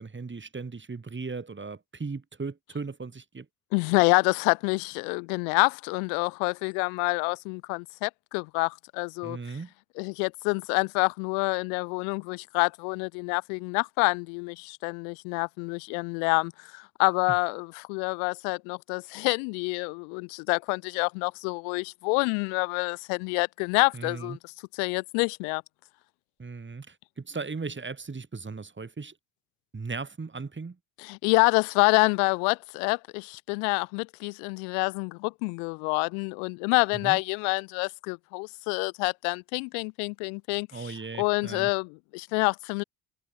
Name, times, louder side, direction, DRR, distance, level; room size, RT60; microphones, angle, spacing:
voice 1, 0.0-3.5 9.2-9.7 23.9-24.4 26.4-29.1 29.7-30.8 37.0-37.2 40.7-41.7, right 4 dB, 25° right, 3.0 m, -37 dB
voice 2, 3.7-9.4 10.0-24.4 24.7-25.6 31.0-42.8, left 40 dB or more, 90° left, 1.3 m, -27 dB
supercardioid pair, 60°, 43 cm